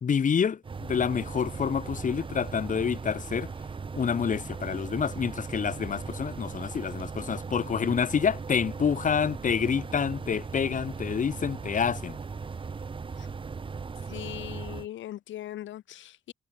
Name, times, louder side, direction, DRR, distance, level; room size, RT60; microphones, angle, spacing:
voice 1, 0.0-3.5 3.9-12.2, left 7 dB, 40° left, 1.5 m, -28 dB
sound 1, 0.6-14.9, right 5 dB, 25° right, 0.8 m, -38 dB
voice 2, 14.1-16.3, left 13 dB, 75° left, 1.1 m, -40 dB
cardioid pair, 90°, 20 cm